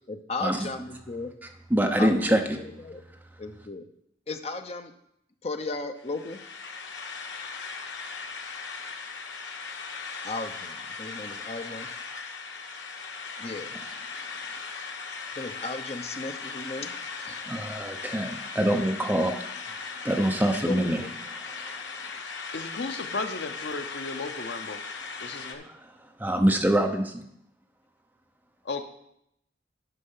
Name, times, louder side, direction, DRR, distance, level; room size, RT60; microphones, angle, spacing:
voice 1, 0.1-1.3 1.8-3.0 3.4-3.9 4.3-4.9 5.4-6.4 10.2-11.9 13.4-13.7 15.4-16.9 17.2-17.4 20.6-21.2, left 3 dB, 35° left, 7 dB, 0.7 m, -35 dB
voice 2, 1.7-2.6 17.5-19.4 20.0-21.0 26.2-27.2, right 1 dB, 10° right, 4 dB, 0.7 m, -24 dB
sound 1, 6.0-25.6, left 4 dB, 90° left, 1.1 m, -38 dB
voice 3, 22.5-24.8 25.2-25.7 28.6-28.8, left 3 dB, 65° left, 7 dB, 0.8 m, -34 dB
10.0 x 5.5 x 5.6 m, 0.76 s
head